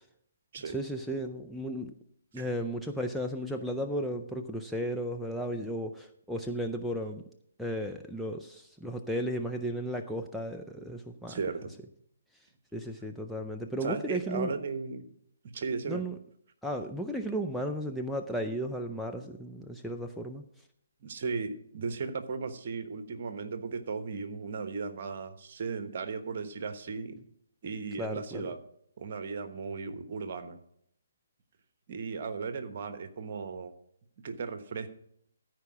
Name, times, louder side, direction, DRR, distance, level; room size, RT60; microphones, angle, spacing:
voice 1, 0.6-1.9 2.3-7.2 7.6-11.4 12.7-14.5 15.9-16.1 16.6-20.4 28.0-28.4, equal, ahead, 1 dB, 0.5 m, -34 dB
voice 2, 11.3-11.7 13.8-15.1 15.5-16.0 21.0-27.2 27.6-28.6 29.0-30.6 31.9-33.7 34.2-34.9, right 5 dB, 45° right, 10 dB, 1.1 m, -36 dB
14.0 x 4.7 x 6.1 m, 0.70 s
figure-of-eight pair, 140°, 0 cm